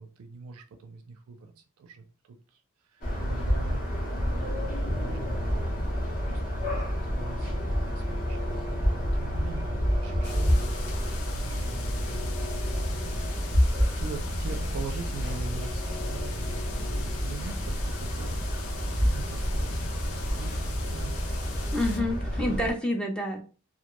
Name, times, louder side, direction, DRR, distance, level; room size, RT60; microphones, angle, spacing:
voice 1, 0.0-2.6 2.9-3.8 4.2-11.9 12.8-13.1 13.9-18.4 18.7-21.8 22.5-22.6, right 4 dB, 80° right, 5 dB, 0.4 m, -43 dB
sound 1, 3.0-22.7, equal, 40° left, 0.7 m, -29 dB
sound 2, 10.2-22.0, left 4 dB, 70° left, 0.5 m, -42 dB
voice 2, 21.7-23.4, left 1 dB, 5° left, 2 dB, 0.3 m, -28 dB
2.2 x 2.1 x 2.9 m, 0.35 s
head